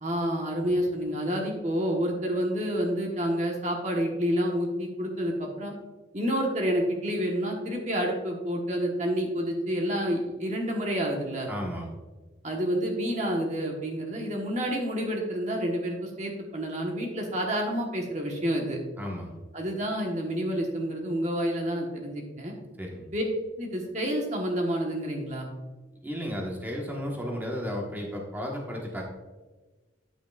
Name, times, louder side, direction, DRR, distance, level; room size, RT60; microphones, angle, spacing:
voice 1, 0.0-5.7 6.1-11.5 12.4-18.8 19.5-22.5 23.1-23.2 23.6-25.5, equal, 40° right, 0 dB, 1.3 m, -29 dB
voice 2, 11.5-11.9 19.0-19.4 22.8-23.1 26.0-29.0, equal, 10° right, -1 dB, 1.3 m, -34 dB
9.4 x 8.9 x 2.4 m, 1.2 s
head